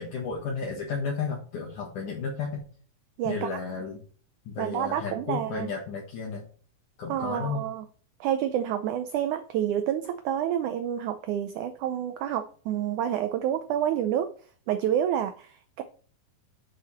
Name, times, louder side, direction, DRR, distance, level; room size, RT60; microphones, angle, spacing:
voice 1, 0.0-2.6 3.3-4.0 4.5-6.5 7.0-7.6, left 5 dB, 60° left, -1 dB, 2.8 m, -33 dB
voice 2, 3.2-3.5 4.6-5.7 7.1-7.9 8.2-14.3 14.7-15.8, right 10 dB, 90° right, 9 dB, 1.7 m, -28 dB
8.9 x 6.4 x 4.4 m, 0.42 s
omnidirectional pair, 4.3 m